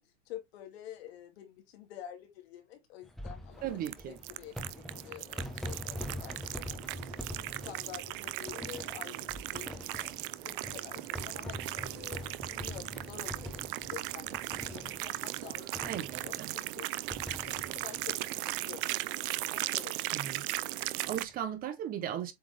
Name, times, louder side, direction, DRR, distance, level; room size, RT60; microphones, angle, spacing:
voice 1, 0.0-16.9 17.3-18.8 19.2-20.1, left 11 dB, 65° left, 2.1 m, -49 dB
sound 1, 3.0-19.1 19.4-19.5 19.7-19.8 21.1-21.3, left 1 dB, ahead, 0.9 m, -44 dB
voice 2, 3.6-4.2 15.9-16.5 20.1-20.5 20.9-22.3, right 10 dB, 25° right, 0.8 m, -37 dB
sound 2, 3.8-21.2, right 18 dB, 55° right, 0.5 m, -37 dB
7.8 x 3.7 x 3.3 m
supercardioid pair, 150°, 33 cm